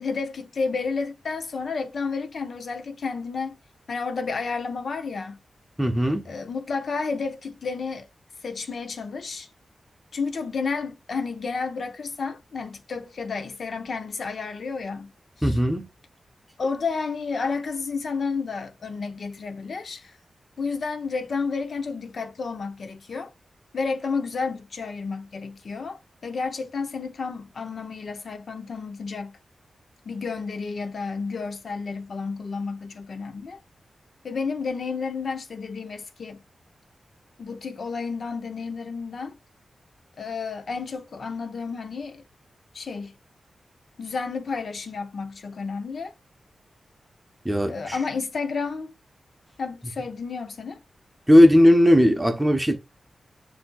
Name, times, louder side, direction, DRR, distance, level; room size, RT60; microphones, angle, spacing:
voice 1, 0.0-3.5 3.9-5.4 6.3-8.0 8.4-9.5 10.1-15.1 15.4-15.6 16.6-20.1 20.6-23.3 23.7-29.4 30.0-33.6 34.2-36.4 37.4-39.4 40.2-42.2 42.7-43.1 44.0-46.1 47.7-48.9 49.6-50.8, left 4 dB, 65° left, 0.7 m, -31 dB
voice 2, 5.8-6.3 15.4-15.8 47.4-48.0 51.3-52.8, equal, 10° right, 0.8 m, -17 dB
7.2 x 2.7 x 2.3 m
wide cardioid pair, 90°, 0 cm